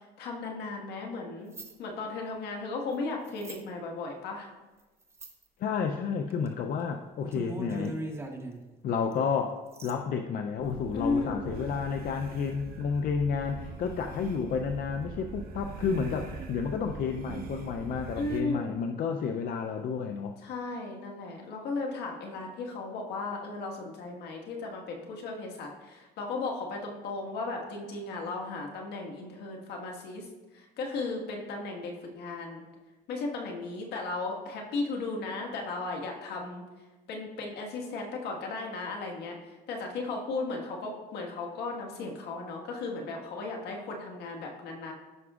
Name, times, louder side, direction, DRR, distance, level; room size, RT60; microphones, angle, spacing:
voice 1, 0.0-1.5 1.8-4.5 10.9-11.5 18.2-18.7 20.4-30.3 30.5-32.6 33.1-36.6 37.1-44.9, left 3 dB, 75° left, 1 dB, 1.6 m, -35 dB
sound 1, 1.5-1.7 3.2-3.6 5.1-5.4 6.3-6.5 6.8-6.9 7.2-8.6 9.1-9.2 9.7-9.9, right 2 dB, 15° right, 1.0 m, -39 dB
voice 2, 5.6-8.0 8.8-20.4, left 6 dB, 55° left, 5 dB, 0.5 m, -31 dB
sound 2, 10.6-18.4, right 4 dB, 60° right, 0.9 m, -42 dB
14.5 x 5.9 x 2.4 m, 1.2 s
cardioid pair, 110°, 17 cm